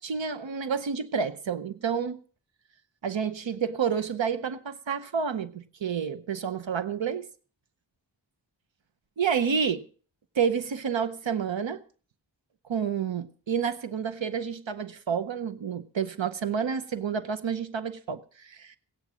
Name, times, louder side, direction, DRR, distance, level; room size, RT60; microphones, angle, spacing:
voice 1, 0.0-2.2 3.0-7.3 9.2-9.8 10.3-11.8 12.7-18.8, right 6 dB, 85° right, 0.8 m, -29 dB
16.5 x 9.1 x 6.1 m
wide cardioid pair, 65°, 44 cm